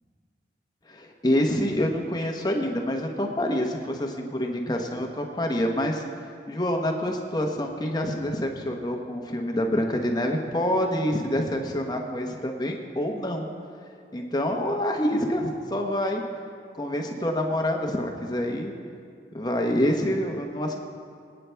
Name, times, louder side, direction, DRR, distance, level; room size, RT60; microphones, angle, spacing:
voice 1, 0.9-6.0 6.5-13.5 14.1-16.2 16.7-18.7 19.3-20.7, left 1 dB, 25° left, 2 dB, 1.0 m, -27 dB
23.0 x 9.1 x 3.4 m, 2.3 s
head